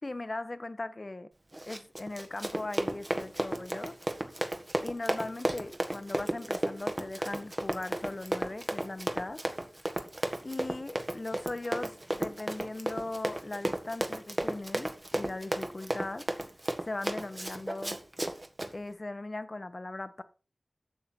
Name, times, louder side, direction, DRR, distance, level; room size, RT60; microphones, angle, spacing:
voice 1, 0.0-1.3 1.7-3.9 4.8-9.4 10.4-16.3 16.8-18.0 18.7-20.2, left 2 dB, 45° left, 1.1 m, -39 dB
Run, 1.5-18.7, right 1 dB, 35° right, 1.7 m, -34 dB
12.0 x 7.4 x 4.5 m
wide cardioid pair, 45°, 0 cm